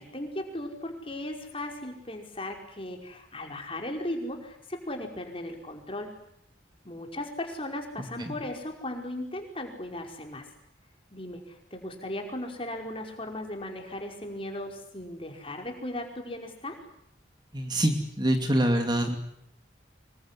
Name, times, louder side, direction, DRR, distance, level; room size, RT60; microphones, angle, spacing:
voice 1, 0.0-6.1 6.8-10.5 11.1-16.8, left 1 dB, 30° left, 3 dB, 5.3 m, -37 dB
voice 2, 17.5-19.2, right 1 dB, 25° right, 5 dB, 2.8 m, -25 dB
26.0 x 23.5 x 9.9 m, 0.73 s
head